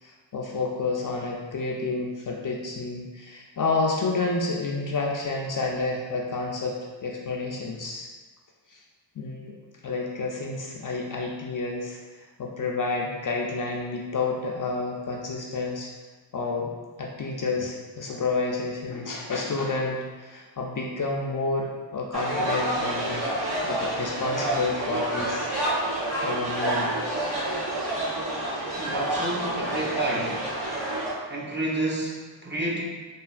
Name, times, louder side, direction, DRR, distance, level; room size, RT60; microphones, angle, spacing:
voice 1, 0.0-8.1 8.7-8.8 9.2-9.6 9.8-15.9 16.3-16.7 17.0-23.3 23.6-25.5 26.2-26.9, left 3 dB, 45° left, -1 dB, 0.4 m, -29 dB
sound 1, 22.1-31.1, right 1 dB, 60° right, 1.0 m, -28 dB
voice 2, 28.8-30.4 31.3-32.8, right 2 dB, 25° right, -4 dB, 0.6 m, -29 dB
3.1 x 2.3 x 2.4 m, 1.3 s
cardioid pair, 50°, 46 cm